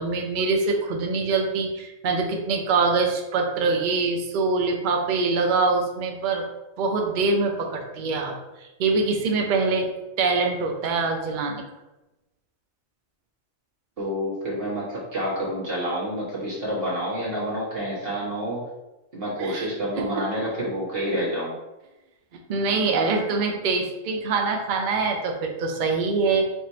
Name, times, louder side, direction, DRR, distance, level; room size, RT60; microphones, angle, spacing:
voice 1, 0.0-6.5 6.8-9.9 10.2-11.6 19.4-19.7 19.9-20.1 22.5-26.5, right 4 dB, 75° right, 2 dB, 0.4 m, -24 dB
voice 2, 14.0-18.6 19.1-21.5, equal, 45° right, -6 dB, 1.5 m, -28 dB
3.6 x 2.5 x 4.1 m, 1.0 s
omnidirectional pair, 1.4 m